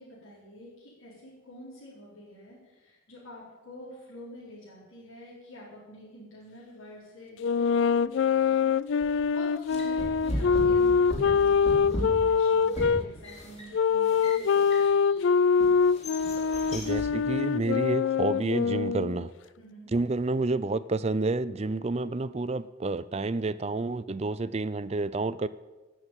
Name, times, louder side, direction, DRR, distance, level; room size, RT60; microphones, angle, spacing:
voice 1, 0.0-15.0 19.6-19.9, left 1 dB, 80° left, -8 dB, 4.6 m, -47 dB
sound 1, 7.4-13.0 13.7-19.2, left 6 dB, 60° left, 0.3 m, -24 dB
sound 2, 9.0-9.2 9.7-15.1 15.6-17.1, equal, 30° left, 3.8 m, -37 dB
voice 2, 16.7-19.3 19.9-25.5, right 3 dB, 30° right, 16 dB, 0.4 m, -29 dB
16.0 x 6.3 x 8.8 m, 1.2 s
head